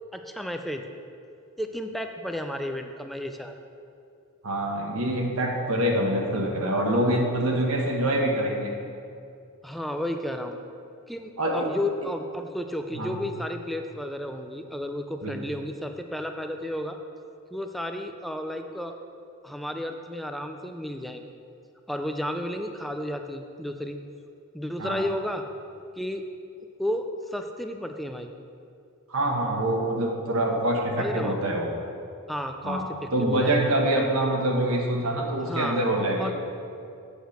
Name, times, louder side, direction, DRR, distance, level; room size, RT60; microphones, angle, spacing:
voice 1, 0.1-0.8 1.6-3.6 9.6-10.6 11.1-17.0 17.5-18.9 19.4-21.3 21.9-24.0 24.5-25.4 26.0-26.3 26.8-28.3 31.0-31.3 32.3-33.7 35.5-35.8 36.2-36.3, left 1 dB, ahead, 5 dB, 0.4 m, -32 dB
voice 2, 4.4-8.7 11.4-11.5 12.9-13.1 15.2-15.4 24.8-25.0 29.1-31.7 32.6-32.8 33.1-36.3, right 1 dB, 65° right, 0 dB, 1.1 m, -25 dB
8.1 x 5.0 x 6.5 m, 2.4 s
head